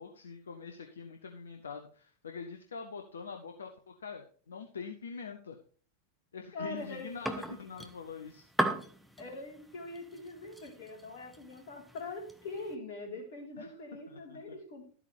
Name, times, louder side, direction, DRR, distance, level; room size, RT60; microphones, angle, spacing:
voice 1, 0.0-5.6 6.3-8.5 13.6-13.7 14.1-14.4, left 5 dB, 70° left, 4 dB, 0.9 m, -44 dB
voice 2, 6.5-7.1 9.2-14.9, left 2 dB, 50° left, 0 dB, 3.8 m, -43 dB
sound 1, 6.8-12.7, right 1 dB, ahead, 1.1 m, -39 dB
12.5 x 8.5 x 3.4 m, 0.43 s
figure-of-eight pair, 90°, 0 cm